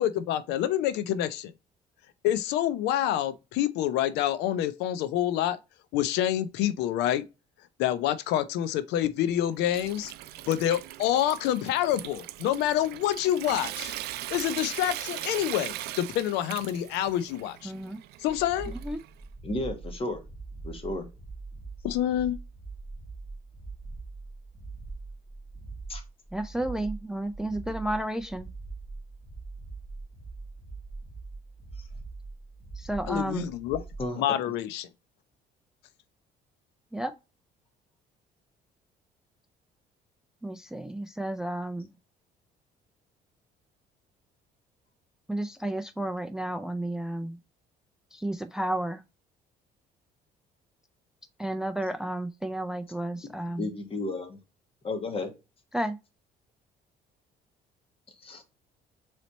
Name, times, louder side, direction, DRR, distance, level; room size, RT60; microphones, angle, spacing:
voice 1, 0.0-1.5 2.2-5.6 5.9-7.2 7.8-10.1 10.5-14.0 14.3-17.7 18.2-18.7 21.8-22.4 33.1-33.8 34.2-34.9, left 11 dB, 90° left, 0.5 m, -27 dB
Water tap faucet / Sink (filling or washing) / Trickle dribble, 9.3-19.2, right 15 dB, 70° right, 0.4 m, -40 dB
voice 2, 17.6-18.0 18.7-19.0 26.3-28.5 32.8-33.5 36.9-37.1 40.4-41.9 45.3-47.4 48.1-49.0 51.4-53.7 55.7-56.0, right 1 dB, 5° right, 0.3 m, -32 dB
sound 1, 18.3-34.1, right 3 dB, 15° left, 1.5 m, -42 dB
voice 3, 19.4-20.2 20.6-21.1 25.9-26.0 31.8-31.9 34.0-34.4 53.5-54.4 54.8-55.3 58.2-58.4, left 2 dB, 35° left, 1.2 m, -33 dB
4.0 x 3.2 x 4.0 m
cardioid pair, 110°, 17 cm